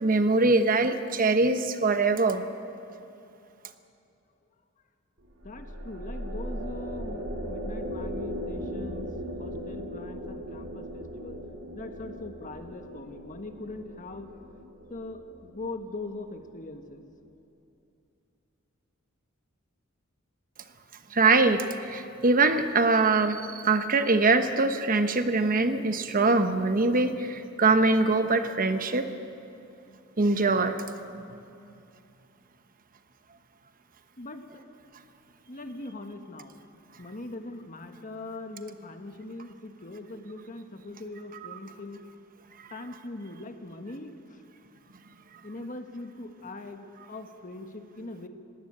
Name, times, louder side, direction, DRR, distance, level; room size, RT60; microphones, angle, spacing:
voice 1, 0.0-2.4 21.1-29.1 30.2-30.8, right 3 dB, 40° right, 9 dB, 1.0 m, -23 dB
sound 1, 5.2-16.7, equal, 70° right, 3.9 m, -38 dB
voice 2, 5.4-9.1 9.4-11.4 11.7-14.3 14.9-17.0 34.2-34.6 35.5-36.6 37.0-42.0 42.7-44.4 45.4-48.3, left 2 dB, 40° left, 7 dB, 1.4 m, -41 dB
20.5 x 17.0 x 8.7 m, 2.7 s
head